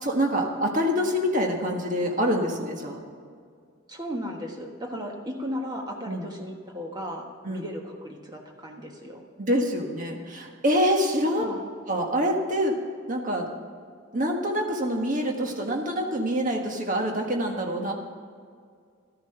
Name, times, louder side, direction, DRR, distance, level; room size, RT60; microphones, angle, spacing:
voice 1, 0.0-3.0 6.1-6.3 7.4-7.6 9.4-11.5 11.9-12.8 13.1-13.5 14.1-17.9, equal, 35° right, 2 dB, 1.4 m, -26 dB
voice 2, 3.9-9.2 11.4-11.6, equal, 20° right, 1 dB, 1.4 m, -35 dB
12.5 x 10.5 x 5.8 m, 2.1 s
head